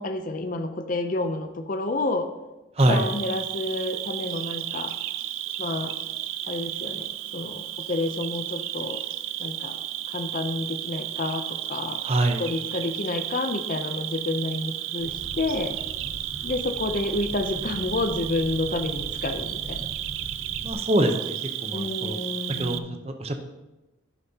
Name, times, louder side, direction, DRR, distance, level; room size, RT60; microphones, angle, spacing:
voice 1, 0.0-2.3 2.9-4.9 5.6-5.9 6.5-9.0 9.4-9.8 10.1-12.0 12.4-15.8 16.4-19.8 21.7-23.0, left 2 dB, 40° left, 7 dB, 0.6 m, -29 dB
voice 2, 2.8-3.1 12.0-12.4 20.6-22.2 22.6-23.4, right 1 dB, 30° right, 6 dB, 0.8 m, -24 dB
Cricket, 2.8-22.8, right 12 dB, 75° right, 0.5 m, -33 dB
sound 1, 15.0-20.7, right 1 dB, 10° right, 2.2 m, -40 dB
11.0 x 10.0 x 2.9 m, 1.1 s
head